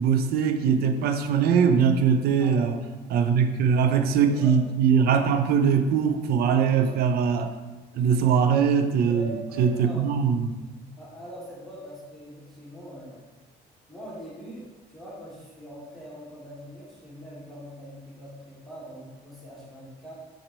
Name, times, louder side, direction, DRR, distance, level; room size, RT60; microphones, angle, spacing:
voice 1, 0.0-2.7 3.1-7.5 7.9-10.6, right 6 dB, 65° right, 7 dB, 0.5 m, -22 dB
voice 2, 2.4-2.7 3.9-4.0 4.3-4.6 6.7-6.9 9.1-10.0 11.0-13.3 13.9-20.1, right 1 dB, ahead, -7 dB, 1.2 m, -42 dB
4.3 x 4.0 x 3.0 m, 1.2 s
cardioid pair, 110°, 17 cm